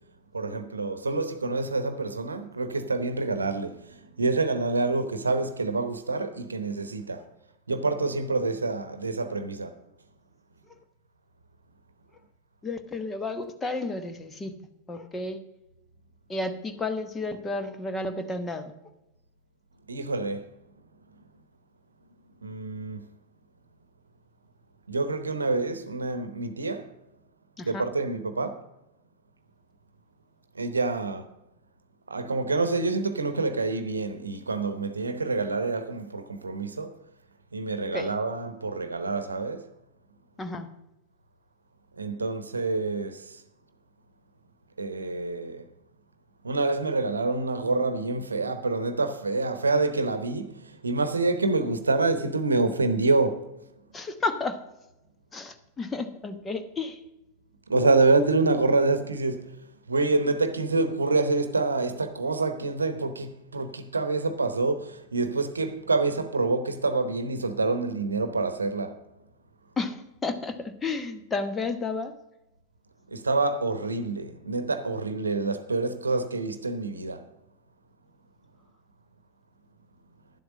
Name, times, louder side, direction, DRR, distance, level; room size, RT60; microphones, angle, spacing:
voice 1, 0.3-7.3 7.7-9.8 19.9-20.5 22.4-23.1 24.9-26.9 27.6-28.6 30.5-31.3 32.1-36.9 37.5-39.7 42.0-43.4 44.8-45.7 46.4-53.5 57.7-59.6 59.9-69.0 73.1-77.3, right 3 dB, 75° right, 0.9 m, -27 dB
voice 2, 12.6-14.6 14.9-15.4 16.3-18.7 27.6-27.9 37.9-38.1 40.4-40.7 53.9-54.6 55.3-57.0 69.8-72.1, left 3 dB, 15° left, 1.1 m, -32 dB
11.0 x 7.8 x 5.3 m
figure-of-eight pair, 90°, 0 cm